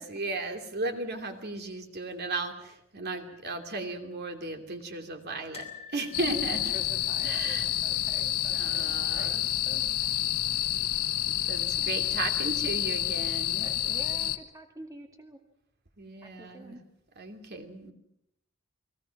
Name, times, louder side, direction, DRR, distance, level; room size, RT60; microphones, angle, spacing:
voice 1, 0.0-6.8 7.2-7.7 8.5-9.4 10.0-10.5 11.4-13.7 16.0-16.8 17.2-17.9, right 3 dB, 50° right, 5 dB, 2.7 m, -36 dB
sound 1, 5.5-8.6 8.8-9.1 9.3-9.4 10.6-11.2 11.7-11.8, left 7 dB, 30° left, 5.6 m, -50 dB
sound 2, 6.1-14.4, left 12 dB, 75° left, 1.2 m, -29 dB
voice 2, 6.2-10.4 11.8-12.0 13.6-15.4 16.2-16.8, right 1 dB, 15° right, 4 dB, 2.1 m, -47 dB
29.5 x 21.0 x 5.9 m, 0.77 s
head